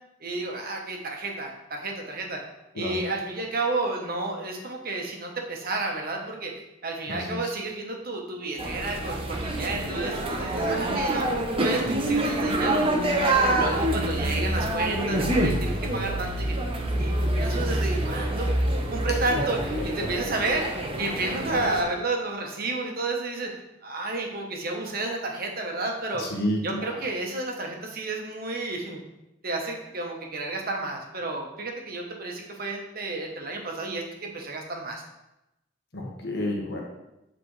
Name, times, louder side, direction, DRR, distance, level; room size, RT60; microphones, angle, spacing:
voice 1, 0.2-2.4 2.7-6.5 6.8-11.3 11.6-12.8 13.2-16.5 17.0-23.5 23.8-26.2 26.6-29.0 29.4-35.0, right 2 dB, 55° right, 1 dB, 1.1 m, -31 dB
voice 2, 7.1-7.4 26.2-26.6 35.9-36.8, left 1 dB, 65° left, -1 dB, 1.3 m, -29 dB
sound 1, 8.6-21.8, right 1 dB, 30° right, 0.8 m, -26 dB
8.6 x 4.2 x 3.3 m, 0.93 s
head